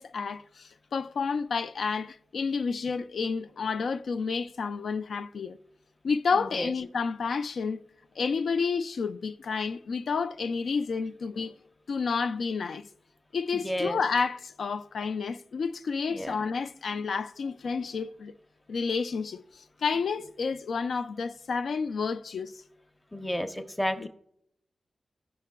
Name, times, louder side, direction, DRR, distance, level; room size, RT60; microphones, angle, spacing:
voice 1, 0.0-5.6 6.0-7.8 8.2-11.5 11.9-12.9 13.3-18.3 18.7-22.6 24.0-24.1, left 5 dB, 80° left, 0.3 m, -30 dB
voice 2, 6.4-6.7 13.6-14.0 16.1-16.3 23.1-24.1, equal, 5° left, 0.6 m, -31 dB
17.0 x 5.8 x 2.2 m
wide cardioid pair, 175°, 0 cm